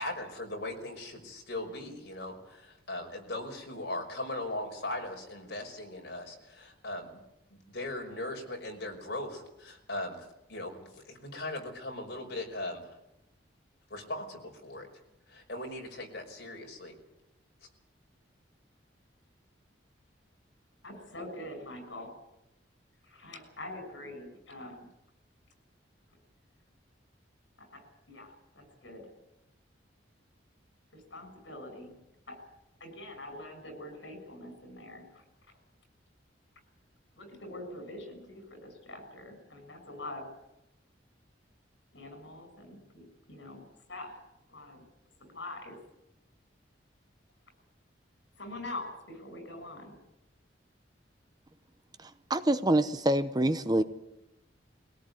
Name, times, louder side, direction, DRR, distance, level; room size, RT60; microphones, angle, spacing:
voice 1, 0.0-7.1 7.5-13.0 13.9-14.9 15.3-16.9, left 1 dB, 55° left, 1 dB, 5.5 m, -39 dB
voice 2, 20.8-22.1 23.0-24.9 27.6-29.1 30.9-31.9 32.3-32.4 32.8-35.6 37.2-40.3 41.9-43.6 43.9-44.2 44.5-44.8 45.3-45.8 48.4-50.0, left 1 dB, 70° left, 7 dB, 6.4 m, -44 dB
voice 3, 52.0-53.8, right 1 dB, 20° right, 11 dB, 0.8 m, -26 dB
22.0 x 17.5 x 9.6 m, 0.89 s
head